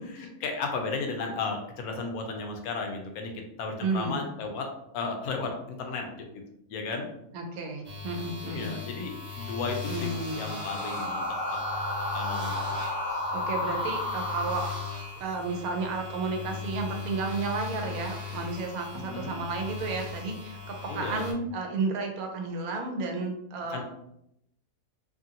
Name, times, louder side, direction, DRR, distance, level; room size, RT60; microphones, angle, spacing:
voice 1, 0.1-6.2 6.7-7.1 8.4-10.1 10.3-11.6 12.1-12.6 18.9-19.4 20.9-21.2 23.7-23.8, left 4 dB, 90° left, 3 dB, 1.1 m, -34 dB
voice 2, 3.8-4.2 7.3-8.7 9.9-10.5 13.3-14.7 15.2-23.8, right 3 dB, 85° right, 3 dB, 1.1 m, -32 dB
sound 1, 7.8-21.3, left 5 dB, 10° right, 0.8 m, -39 dB
sound 2, 10.3-15.4, left 1 dB, 55° left, 0.7 m, -32 dB
2.9 x 2.5 x 2.7 m, 0.79 s
omnidirectional pair, 1.5 m